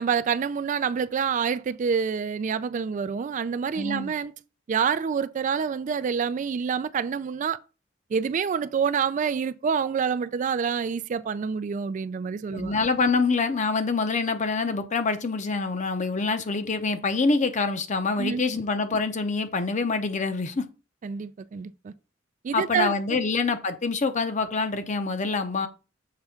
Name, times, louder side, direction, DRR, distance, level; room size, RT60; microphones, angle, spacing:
voice 1, 0.0-4.3 4.7-7.6 8.1-12.7 18.2-18.4 21.0-21.9 22.4-23.2, right 6 dB, 40° right, 0.3 m, -27 dB
voice 2, 3.7-4.1 12.5-20.7 22.5-25.7, left 4 dB, 40° left, 0.7 m, -26 dB
6.8 x 3.4 x 5.6 m
head